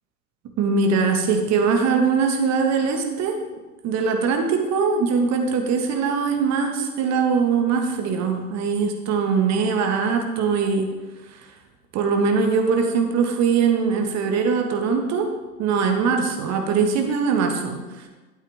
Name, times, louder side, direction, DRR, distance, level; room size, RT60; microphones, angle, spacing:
voice 1, 0.6-3.4 3.8-10.9 11.3-11.5 11.9-15.3 15.6-18.1, right 5 dB, 35° right, 4 dB, 1.6 m, -21 dB
12.5 x 8.3 x 3.6 m, 1.3 s
figure-of-eight pair, 95°, 49 cm